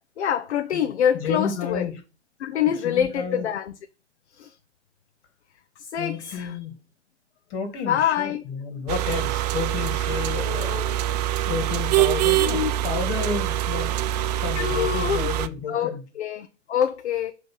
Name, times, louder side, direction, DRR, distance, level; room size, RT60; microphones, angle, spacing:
voice 1, 0.2-1.9 2.4-3.7 4.4-4.5 5.9-6.6 7.9-8.4 10.3-11.2 12.4-12.7 14.5-15.3 15.7-17.3, left 9 dB, 70° left, 0.7 m, -26 dB
voice 2, 0.7-2.0 2.8-3.5 5.9-6.8 7.5-10.8 11.4-13.9 14.4-16.1, left 6 dB, 40° left, 2.2 m, -31 dB
sound 1, 8.9-15.5, right 13 dB, 40° right, 0.4 m, -24 dB
7.9 x 3.2 x 5.5 m
figure-of-eight pair, 110°, 34 cm